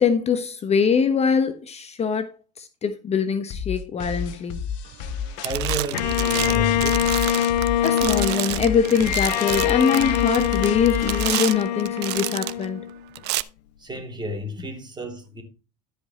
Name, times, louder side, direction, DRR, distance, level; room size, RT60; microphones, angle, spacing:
voice 1, 0.0-2.3 2.6-4.7 7.8-12.8, left 6 dB, 30° left, 1.0 m, -23 dB
sound 1, 3.5-11.5, left 7 dB, 65° left, 1.2 m, -31 dB
sound 2, 4.9-5.2 5.4-12.7 13.2-13.4, right 18 dB, 55° right, 0.7 m, -30 dB
voice 2, 5.4-7.1 13.8-15.4, equal, 20° right, 3.1 m, -31 dB
Bowed string instrument, 5.9-13.2, left 11 dB, 80° left, 0.5 m, -24 dB
13.0 x 5.1 x 4.3 m
hypercardioid pair, 85°, 21 cm